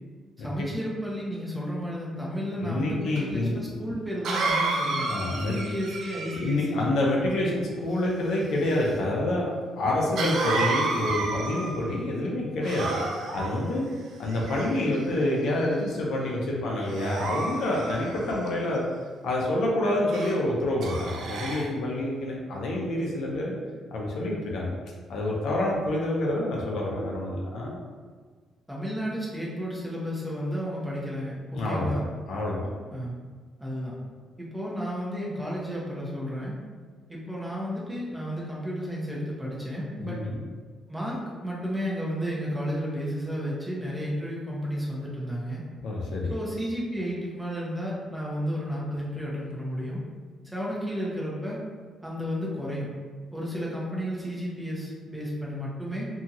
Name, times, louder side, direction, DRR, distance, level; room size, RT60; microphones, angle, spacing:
voice 1, 0.4-5.1 5.4-6.9 28.7-32.1 32.9-33.1 33.6-33.9 34.4-36.6 37.1-40.2 40.9-45.6 46.3-50.0 50.4-51.6 52.0-52.9 53.3-56.1, equal, 10° right, -5 dB, 0.8 m, -32 dB
voice 2, 2.6-3.6 5.0-5.6 6.3-9.5 9.8-12.9 13.3-13.8 14.2-18.8 19.2-23.5 23.9-24.7 25.1-27.8 31.5-32.0 32.3-32.7 40.0-40.4 45.8-46.3, left 1 dB, 75° left, -3 dB, 0.6 m, -27 dB
Cough, 3.2-3.3 4.2-6.6 10.2-11.9 12.6-13.5 14.3-15.0 15.6-15.9 16.9-18.5 20.1-20.4 20.8-21.7, right 3 dB, 70° right, 0.4 m, -30 dB
2.8 x 2.7 x 2.4 m, 1.5 s
cardioid pair, 90°, 0 cm